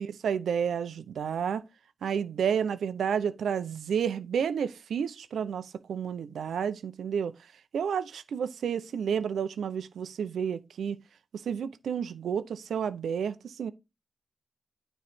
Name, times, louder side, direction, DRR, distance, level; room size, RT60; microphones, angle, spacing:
voice 1, 0.0-1.6 2.0-7.3 7.7-11.0 11.5-13.7, right 7 dB, 90° right, 0.6 m, -31 dB
9.6 x 3.2 x 5.1 m
cardioid pair, 60°, 0 cm